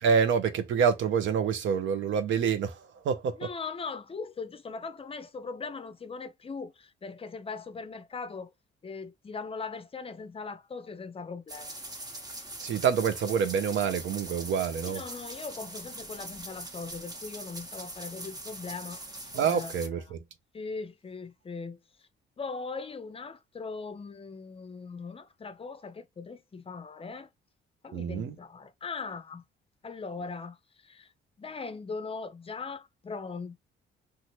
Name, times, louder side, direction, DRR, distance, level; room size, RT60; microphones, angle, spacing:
voice 1, 0.0-3.5 12.6-15.0 19.3-20.2 27.9-28.4, right 7 dB, 75° right, 0.7 m, -27 dB
voice 2, 3.4-8.5 8.8-11.7 14.8-19.1 19.4-19.7 20.5-22.1 22.4-27.3 27.8-29.4 29.8-31.1 31.4-33.6, left 4 dB, 30° left, 0.5 m, -40 dB
sound 1, 11.5-19.9, right 1 dB, 20° right, 0.9 m, -42 dB
2.8 x 2.4 x 3.0 m
cardioid pair, 90°, 20 cm